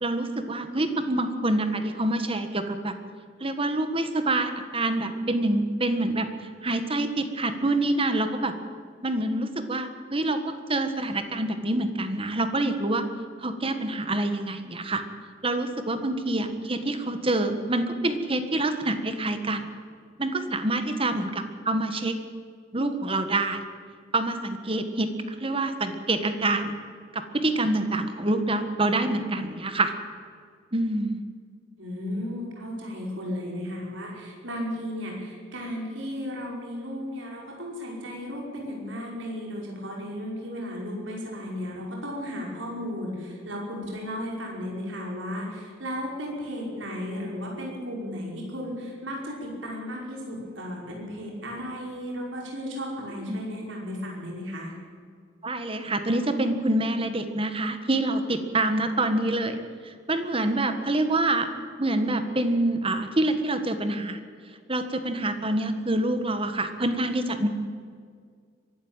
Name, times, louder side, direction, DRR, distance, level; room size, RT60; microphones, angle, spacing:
voice 1, 0.0-2.9 3.4-6.3 6.6-8.5 9.0-13.0 13.4-15.0 15.4-19.7 20.2-22.2 22.7-23.6 24.1-25.1 25.4-26.7 27.1-29.9 30.7-31.2 53.3-53.4 55.4-59.6 59.8-61.5 61.8-64.2 64.7-67.5, right 2 dB, 30° right, 8 dB, 1.5 m, -26 dB
voice 2, 31.8-54.7, equal, 85° right, -2 dB, 5.4 m, -34 dB
23.0 x 12.5 x 9.0 m, 2.1 s
head